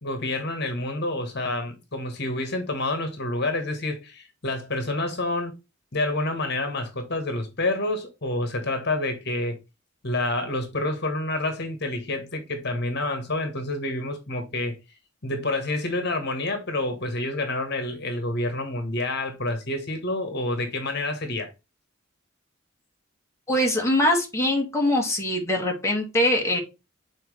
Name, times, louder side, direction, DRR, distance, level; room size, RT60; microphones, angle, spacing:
voice 1, 0.0-5.5 5.9-9.6 10.0-14.7 15.2-21.5, left 2 dB, 55° left, 1.5 m, -28 dB
voice 2, 23.5-26.6, left 1 dB, 15° left, 1.9 m, -23 dB
7.1 x 4.5 x 3.3 m
head